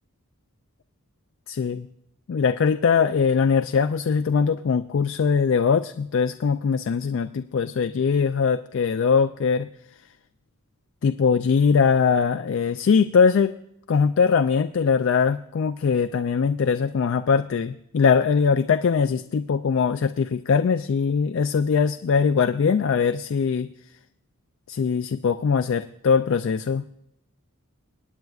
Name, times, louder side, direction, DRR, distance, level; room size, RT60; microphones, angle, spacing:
voice 1, 1.5-1.9 2.3-9.7 11.0-13.5 13.9-23.7 24.7-26.8, left 6 dB, 60° left, 9 dB, 0.3 m, -21 dB
24.0 x 9.2 x 2.4 m, 0.80 s
head